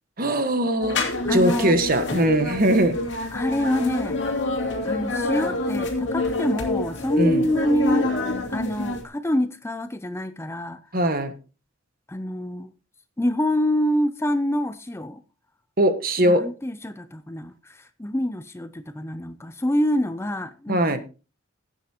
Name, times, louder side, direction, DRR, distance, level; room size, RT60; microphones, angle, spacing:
voice 1, 0.2-1.0 1.3-3.0 7.2-7.4 10.9-11.3 15.8-16.4 20.7-21.0, right 1 dB, 45° right, 1.4 m, -21 dB
sound 1, 0.8-9.0, left 2 dB, 60° left, 2.8 m, -27 dB
voice 2, 1.3-1.7 3.3-4.2 4.8-8.2 8.5-10.8 12.1-12.7 13.2-15.2 16.2-21.0, equal, 15° left, 0.5 m, -26 dB
16.5 x 9.1 x 2.9 m
head